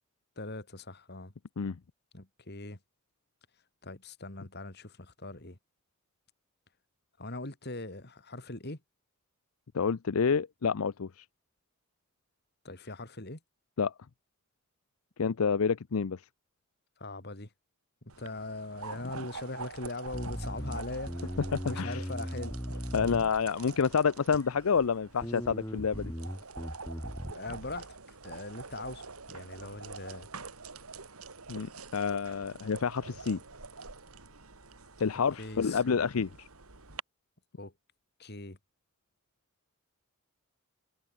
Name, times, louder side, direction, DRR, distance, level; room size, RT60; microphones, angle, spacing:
voice 1, 0.4-1.3 2.1-2.8 3.8-5.6 7.2-8.8 12.6-13.4 17.0-17.5 18.2-21.4 21.7-22.9 27.2-27.9 28.2-30.3 35.4-36.0 37.6-37.7 38.2-38.6, left 2 dB, 50° left, 3.0 m, -41 dB
voice 2, 9.7-11.2 13.8-13.9 15.2-16.2 21.5-22.0 22.9-26.1 31.5-33.4 35.0-36.5, left 6 dB, 80° left, 0.6 m, -28 dB
sound 1, 18.1-37.0, right 4 dB, 90° right, 3.2 m, -46 dB
Bass guitar, 20.1-23.7 24.3-24.9 25.2-27.3, equal, 15° left, 4.2 m, -38 dB
head